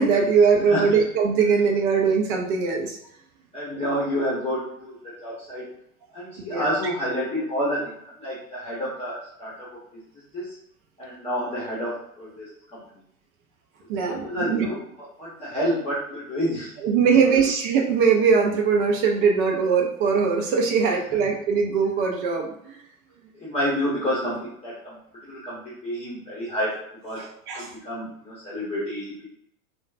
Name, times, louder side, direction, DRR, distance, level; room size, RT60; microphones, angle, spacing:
voice 1, 0.0-3.0 6.5-6.7 13.9-14.7 16.8-22.8 27.2-27.7, right 5 dB, 35° right, 1 dB, 0.5 m, -21 dB
voice 2, 0.7-1.0 3.5-5.7 6.1-7.8 8.2-9.8 10.3-10.6 11.0-12.8 14.2-14.9 15.2-16.8 17.3-17.4 23.3-25.0 25.2-26.7 27.0-27.3 27.5-29.3, equal, 15° left, -8 dB, 1.0 m, -29 dB
3.6 x 2.2 x 2.5 m, 0.72 s
figure-of-eight pair, 95°, 44 cm